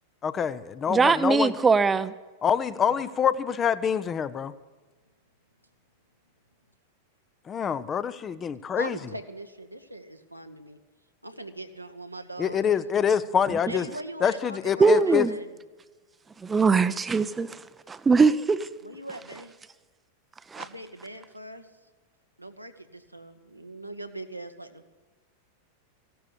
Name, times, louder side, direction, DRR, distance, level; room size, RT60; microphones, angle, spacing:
voice 1, 0.2-1.5 2.4-4.5 7.5-9.0 12.4-13.9 14.2-15.2, left 8 dB, 25° left, 14 dB, 0.7 m, -25 dB
voice 2, 0.9-2.1 14.8-15.3 16.4-17.6 17.9-18.7 20.5-20.6, right 4 dB, 15° right, 14 dB, 0.6 m, -21 dB
voice 3, 8.8-10.8 11.2-12.7 13.7-15.5 18.8-19.5 20.5-21.7 22.4-24.8, right 1 dB, 90° right, 6 dB, 1.1 m, -41 dB
15.5 x 11.5 x 6.9 m, 1.3 s
figure-of-eight pair, 90°, 0 cm